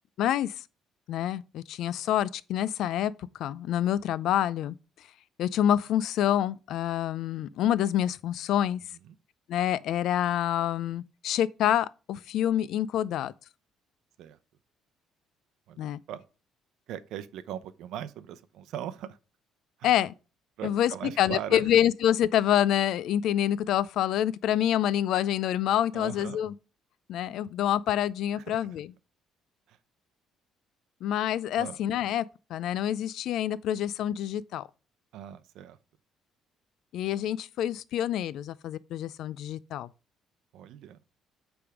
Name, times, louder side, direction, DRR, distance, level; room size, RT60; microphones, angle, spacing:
voice 1, 0.2-0.5 1.1-3.1 3.4-4.8 5.4-8.8 9.5-13.3 15.8-16.0 19.8-20.1 20.6-20.9 21.2-26.5 27.1-28.9 31.0-32.2 32.5-34.7 36.9-39.9, left 11 dB, 60° left, 0.4 m, -27 dB
voice 2, 15.7-16.2 16.9-19.2 19.8-19.9 20.6-21.6 25.9-26.4 28.4-28.6 29.7-29.8 31.6-31.8 35.1-35.8 40.5-41.0, right 10 dB, 70° right, 0.6 m, -39 dB
8.4 x 3.5 x 5.9 m
cardioid pair, 170°, 0 cm